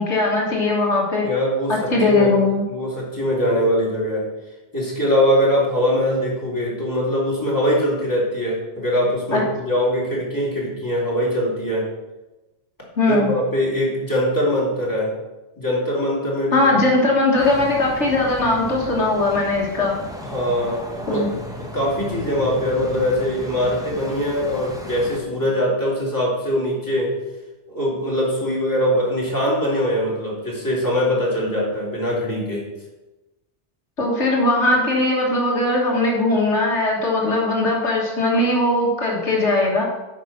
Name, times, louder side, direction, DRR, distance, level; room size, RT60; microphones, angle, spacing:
voice 1, 0.0-1.3 1.7-2.6 9.3-9.4 13.0-13.3 16.5-20.0 21.1-21.3 34.0-39.8, left 2 dB, 75° left, -2 dB, 2.0 m, -19 dB
voice 2, 1.2-2.3 2.7-4.3 4.7-11.9 13.1-15.1 15.6-16.8 20.2-27.1 27.7-32.7, equal, 15° left, -6 dB, 2.9 m, -22 dB
sound 1, 17.4-25.2, equal, 5° right, 1.0 m, -35 dB
8.6 x 5.8 x 5.9 m, 1.1 s
omnidirectional pair, 1.2 m